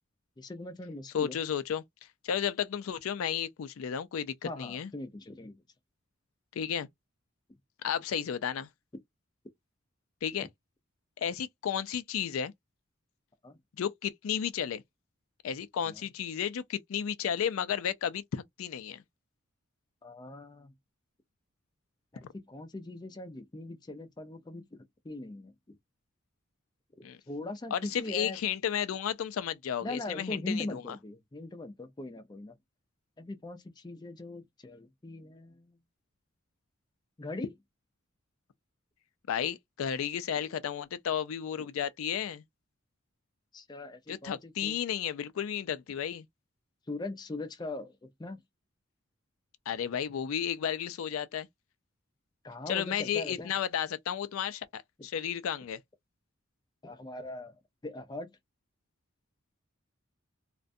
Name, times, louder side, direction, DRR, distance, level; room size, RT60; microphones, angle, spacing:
voice 1, 0.4-1.4 4.4-5.6 13.4-13.6 15.8-15.9 20.0-20.7 22.1-25.5 27.0-28.4 29.8-32.5 33.2-35.7 37.2-37.5 43.5-44.8 46.9-47.9 48.2-48.4 52.4-53.5 56.8-57.5 57.8-58.3, left 2 dB, 20° left, 0.4 m, -41 dB
voice 2, 1.1-1.8 2.2-4.9 6.5-6.9 7.8-8.7 10.2-10.5 11.2-12.5 13.8-14.8 15.4-19.0 27.0-27.2 27.7-31.0 39.3-42.4 44.1-46.3 49.7-51.5 52.7-55.8, left 8 dB, 85° left, 0.4 m, -33 dB
2.4 x 2.2 x 2.5 m
head